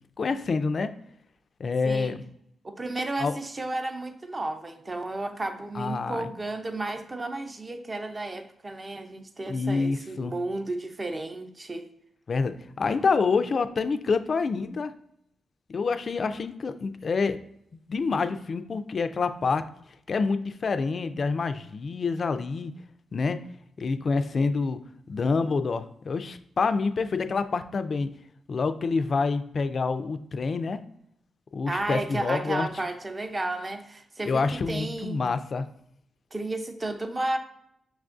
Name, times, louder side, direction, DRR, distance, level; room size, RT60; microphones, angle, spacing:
voice 1, 0.2-0.9 1.6-2.2 3.2-3.3 5.7-6.3 9.5-10.3 12.3-14.9 15.7-17.4 17.9-19.6 20.1-22.7 23.1-23.4 23.8-24.8 25.1-28.1 28.5-30.8 31.5-32.7 34.3-35.7, left 4 dB, 55° left, 10 dB, 0.3 m, -27 dB
voice 2, 2.6-11.9 31.7-35.2 36.3-37.4, right 2 dB, 30° right, 6 dB, 0.6 m, -33 dB
5.8 x 2.3 x 2.5 m, 0.74 s
cardioid pair, 60°, 0 cm